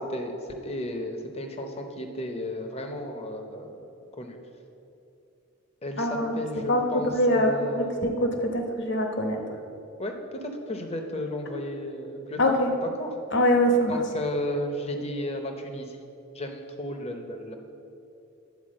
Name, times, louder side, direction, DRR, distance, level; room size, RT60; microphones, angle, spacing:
voice 1, 0.6-3.8 4.2-4.4 5.8-8.0 10.0-12.6 13.0-13.1 13.9-16.0 16.3-17.6, left 1 dB, 30° left, 5 dB, 0.7 m, -33 dB
voice 2, 6.0-6.3 6.7-6.8 7.1-9.4 12.4-12.7 13.3-14.0, equal, 55° left, 3 dB, 1.1 m, -23 dB
10.5 x 4.6 x 7.6 m, 2.8 s
head